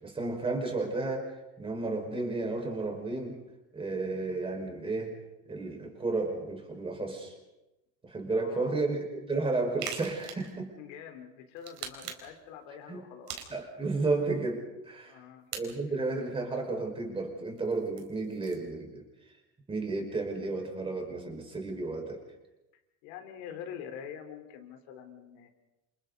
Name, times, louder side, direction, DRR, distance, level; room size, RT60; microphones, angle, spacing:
voice 1, 0.0-3.4 3.7-5.2 5.5-7.3 8.0-10.8 12.9-13.0 13.5-15.2 15.5-19.1 19.7-22.2, right 3 dB, 15° right, 2 dB, 5.3 m, -32 dB
voice 2, 8.3-8.8 10.7-13.3 15.0-15.5 23.0-25.5, left 8 dB, 80° left, 4 dB, 4.1 m, -45 dB
sound 1, 9.8-10.5 11.6-12.4 13.3-13.9 15.5-15.6 17.6-18.7, right 8 dB, 80° right, 4.4 m, -41 dB
29.5 x 27.5 x 4.1 m, 0.99 s
cardioid pair, 150°, 32 cm